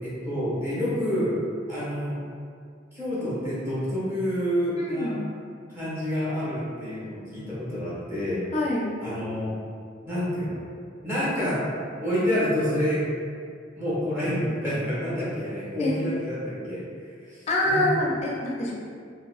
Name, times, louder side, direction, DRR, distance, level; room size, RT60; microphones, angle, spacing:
voice 1, 0.0-1.4 1.7-2.2 2.9-5.2 5.7-8.5 9.0-9.5 10.0-10.7 11.0-11.7 12.0-13.1 13.7-16.8 17.2-18.0, equal, 15° right, -10 dB, 1.2 m, -28 dB
voice 2, 4.8-5.2 8.5-8.9 15.8-16.0 17.5-18.7, left 1 dB, 35° left, -3 dB, 0.5 m, -25 dB
3.9 x 2.2 x 2.4 m, 2.2 s
head